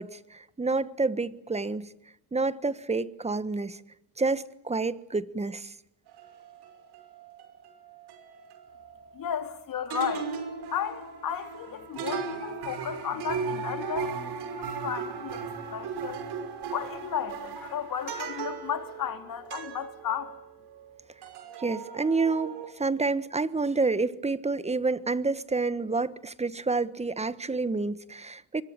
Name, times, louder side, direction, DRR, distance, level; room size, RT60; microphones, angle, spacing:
voice 1, 0.0-1.9 2.3-3.8 4.2-5.7 21.6-28.6, right 3 dB, 15° right, 1.4 m, -29 dB
sound 1, 6.1-9.6 9.9-20.9 21.2-22.7, right 5 dB, 70° right, 5.8 m, -37 dB
voice 2, 9.1-10.3 10.7-16.2 16.7-20.3, left 9 dB, 55° left, 3.6 m, -34 dB
24.5 x 22.0 x 9.0 m
cardioid pair, 100°, 40 cm